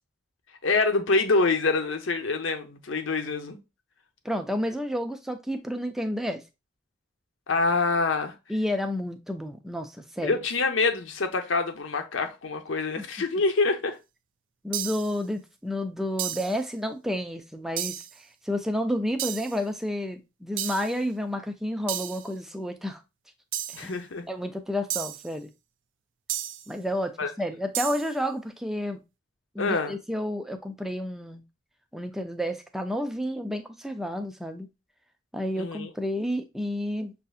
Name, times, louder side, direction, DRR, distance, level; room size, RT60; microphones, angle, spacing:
voice 1, 0.6-3.6 7.5-8.3 10.2-14.0 23.7-24.3 27.2-27.3 29.6-30.0 35.5-35.9, left 3 dB, 75° left, 0.8 m, -26 dB
voice 2, 4.2-6.4 8.5-10.4 13.0-13.1 14.6-18.0 18.4-23.0 23.7-24.0 24.3-25.5 26.7-29.0 29.5-31.4 31.9-34.7 35.3-37.1, equal, ahead, 0.4 m, -30 dB
sound 1, 14.7-15.2 16.2-16.6 17.8-18.1 19.2-19.6 20.6-21.0 21.9-22.3 23.5-23.9 24.9-25.3 26.3-26.7 27.7-28.1, right 12 dB, 70° right, 0.4 m, -33 dB
6.4 x 2.7 x 2.4 m
head